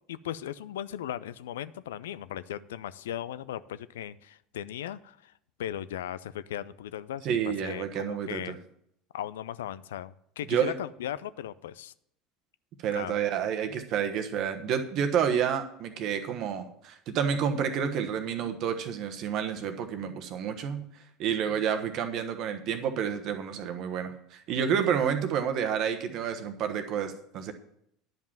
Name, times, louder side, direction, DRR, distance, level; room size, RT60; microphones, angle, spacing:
voice 1, 0.1-5.3 5.6-8.6 9.1-11.9 12.9-13.2, left 11 dB, 75° left, 15 dB, 0.4 m, -37 dB
voice 2, 7.2-8.6 10.5-10.7 12.8-20.9 21.2-27.5, right 8 dB, 50° right, 7 dB, 1.2 m, -29 dB
11.0 x 5.3 x 7.3 m, 0.72 s
figure-of-eight pair, 70°, 0 cm